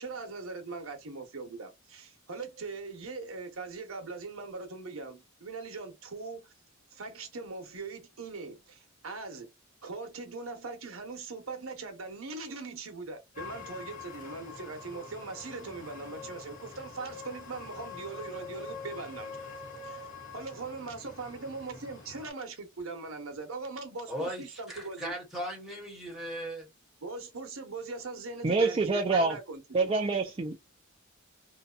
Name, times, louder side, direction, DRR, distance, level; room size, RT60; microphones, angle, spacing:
voice 1, 0.0-6.5 6.9-9.5 9.8-19.5 19.8-20.1 20.3-25.1 27.0-29.9, right 3 dB, 80° right, 0.9 m, -41 dB
sound 1, 13.3-22.3, left 4 dB, 40° left, 1.0 m, -45 dB
voice 2, 24.1-26.7, equal, ahead, 1.2 m, -38 dB
voice 3, 28.4-29.4 29.7-30.6, right 3 dB, 25° right, 0.4 m, -26 dB
2.7 x 2.2 x 2.4 m
head